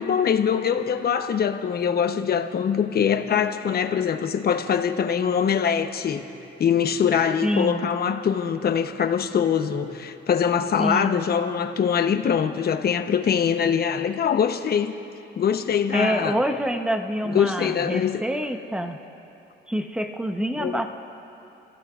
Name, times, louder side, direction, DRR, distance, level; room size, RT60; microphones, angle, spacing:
voice 1, 0.0-6.2 6.6-14.9 15.4-16.4 17.2-18.2 20.6-20.9, left 7 dB, 50° left, 7 dB, 0.9 m, -23 dB
voice 2, 7.4-7.9 10.8-11.3 15.9-19.0 19.7-20.9, equal, 5° right, 6 dB, 0.9 m, -26 dB
29.0 x 15.5 x 2.5 m, 2.9 s
cardioid pair, 90°, 20 cm